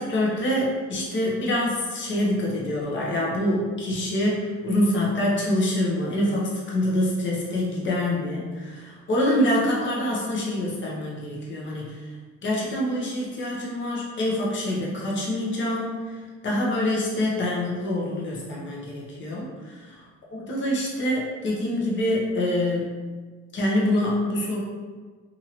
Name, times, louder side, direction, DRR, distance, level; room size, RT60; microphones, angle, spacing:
voice 1, 0.0-12.0 12.4-16.2 16.4-19.7 20.3-23.0 23.5-24.6, left 1 dB, 40° left, -5 dB, 0.8 m, -25 dB
2.8 x 2.6 x 2.9 m, 1.4 s
cardioid pair, 90°, 30 cm